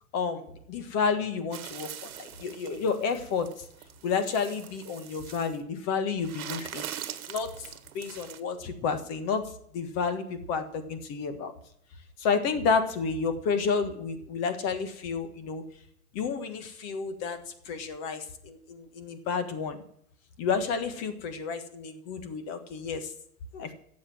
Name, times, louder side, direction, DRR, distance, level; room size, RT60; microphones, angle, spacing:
voice 1, 0.1-1.9 2.2-3.5 4.0-6.8 7.3-7.7 7.9-9.4 9.7-11.5 12.2-15.6 16.1-19.8 20.4-23.1 23.5-23.7, left 5 dB, 35° left, 9 dB, 1.5 m, -30 dB
sound 1, 1.5-5.6 6.2-8.4, right 10 dB, 70° right, 1.4 m, -42 dB
12.0 x 7.7 x 7.6 m, 0.68 s
hypercardioid pair, 120°, 44 cm